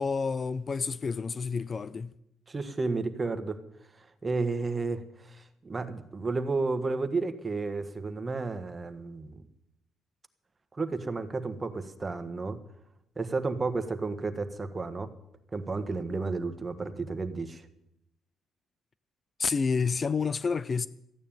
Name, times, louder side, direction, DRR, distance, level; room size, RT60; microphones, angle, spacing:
voice 1, 0.0-2.1 19.4-20.9, left 5 dB, 35° left, 0.4 m, -29 dB
voice 2, 2.5-3.6 3.9-9.4 10.7-12.6 13.2-15.1 15.5-17.6, right 3 dB, 25° right, 1.4 m, -32 dB
14.0 x 9.5 x 9.1 m
cardioid pair, 105°, 0 cm